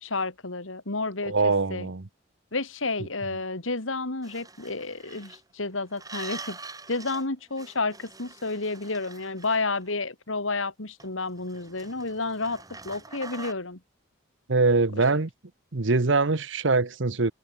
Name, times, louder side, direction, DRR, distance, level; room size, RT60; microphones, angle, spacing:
voice 1, 0.0-1.9 2.5-6.6 6.9-13.8 15.0-15.1, left 3 dB, 80° left, 2.7 m, -31 dB
voice 2, 1.2-2.1 14.5-15.3 15.7-17.3, right 3 dB, 65° right, 1.1 m, -23 dB
sound 1, 4.2-5.4 5.9-7.3 7.5-9.9 11.0-13.5, right 3 dB, 20° right, 5.0 m, -44 dB
head